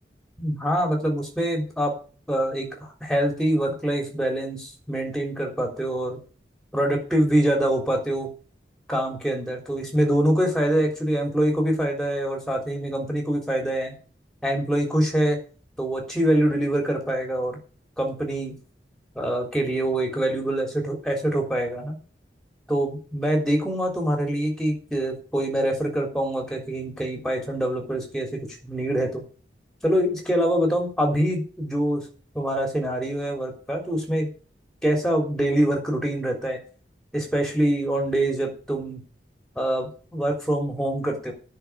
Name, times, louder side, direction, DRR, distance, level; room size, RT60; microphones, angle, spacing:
voice 1, 0.4-1.9 2.3-6.2 6.7-8.3 8.9-13.9 14.4-15.4 15.8-17.6 18.0-18.5 19.1-21.9 22.7-29.2 29.8-32.1 32.3-34.3 34.8-36.6 37.1-39.0 39.6-41.3, right 1 dB, 5° left, 0 dB, 3.7 m, -25 dB
10.0 x 6.4 x 8.7 m, 0.38 s
head